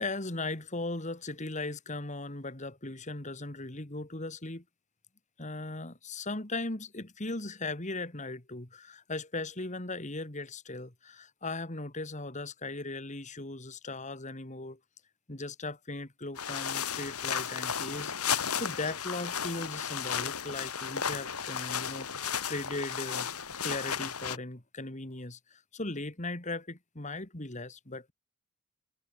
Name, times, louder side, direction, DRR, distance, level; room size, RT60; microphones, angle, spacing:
voice 1, 0.0-4.6 5.4-14.8 15.3-23.3 23.6-28.1, left 2 dB, 35° left, 2.3 m, -38 dB
sound 1, 16.4-24.4, left 7 dB, 85° left, 3.4 m, -34 dB
head